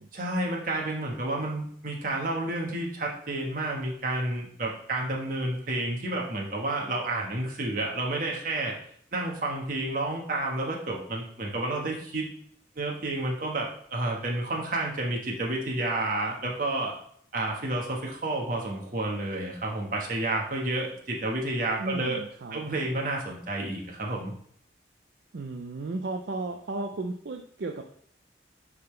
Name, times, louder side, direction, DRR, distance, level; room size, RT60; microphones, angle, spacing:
voice 1, 0.1-8.7 9.1-12.3 12.7-16.9 17.3-22.2 22.5-24.3, right 2 dB, 45° right, -1 dB, 1.4 m, -30 dB
voice 2, 21.8-22.6 25.3-27.8, right 2 dB, 65° right, 4 dB, 0.5 m, -34 dB
9.5 x 3.9 x 3.3 m, 0.62 s
head